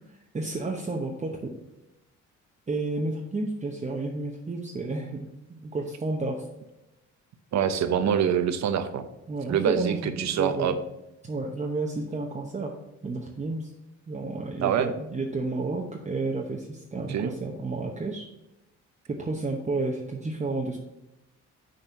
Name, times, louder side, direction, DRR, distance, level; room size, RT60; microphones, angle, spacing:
voice 1, 0.3-1.5 2.7-5.2 5.5-6.4 9.3-10.8 11.3-12.7 13.0-13.7 14.1-18.3 19.1-20.8, right 3 dB, 25° right, 0 dB, 0.9 m, -31 dB
voice 2, 7.5-9.1 9.5-10.8 14.6-14.9 16.9-17.3, right 8 dB, 65° right, 10 dB, 0.8 m, -25 dB
6.7 x 4.1 x 6.0 m, 0.91 s
cardioid pair, 90°, 30 cm